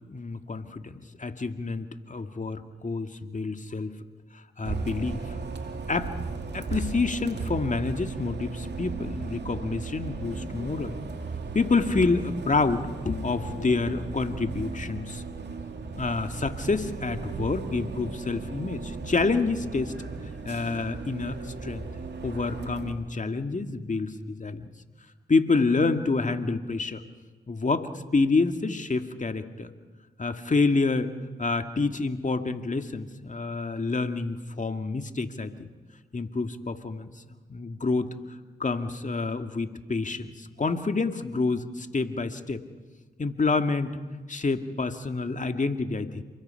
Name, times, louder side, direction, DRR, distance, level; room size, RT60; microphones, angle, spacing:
voice 1, 0.1-0.9 1.2-3.9 4.6-5.3 5.9-6.2 6.5-11.0 11.5-15.2 15.9-19.9 20.2-21.9 22.2-24.7 25.3-27.0 27.5-29.7 30.2-31.1 31.4-35.7 36.1-42.6 43.2-44.0 44.3-46.2, left 3 dB, 45° left, 7 dB, 2.0 m, -28 dB
Bus, 4.7-22.9, right 4 dB, 70° right, 2.5 m, -36 dB
28.0 x 22.0 x 5.8 m, 1.3 s
supercardioid pair, 40°, 18 cm